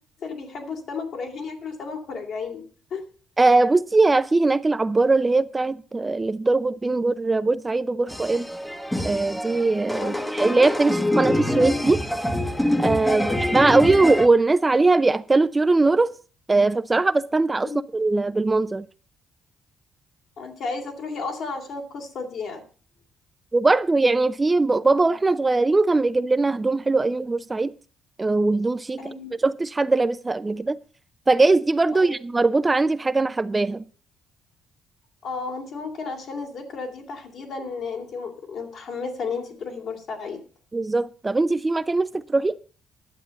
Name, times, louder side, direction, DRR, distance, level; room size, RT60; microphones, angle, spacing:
voice 1, 0.2-2.6 2.9-3.0 10.0-10.3 13.0-13.6 17.6-17.8 20.4-22.6 29.0-29.3 31.9-32.2 35.2-40.4, left 4 dB, 65° left, 3.0 m, -33 dB
voice 2, 3.4-8.5 9.0-12.1 12.8-16.1 16.5-18.9 23.5-27.7 28.2-29.1 29.4-30.8 31.3-33.8 40.7-42.6, right 3 dB, 20° right, 0.5 m, -21 dB
sound 1, 8.1-14.3, left 1 dB, 5° left, 1.0 m, -25 dB
11.0 x 7.5 x 6.6 m
cardioid pair, 90°, 0 cm